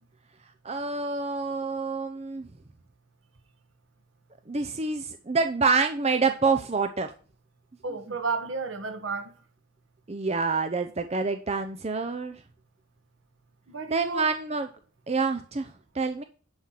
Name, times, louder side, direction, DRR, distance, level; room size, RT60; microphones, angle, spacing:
voice 1, 0.6-2.5 4.5-7.1 10.1-12.4 13.9-14.7 15.1-16.2, right 4 dB, 30° right, 0.6 m, -27 dB
voice 2, 7.8-9.4 13.7-14.3, right 4 dB, 70° right, 1.7 m, -32 dB
10.5 x 4.5 x 5.9 m
head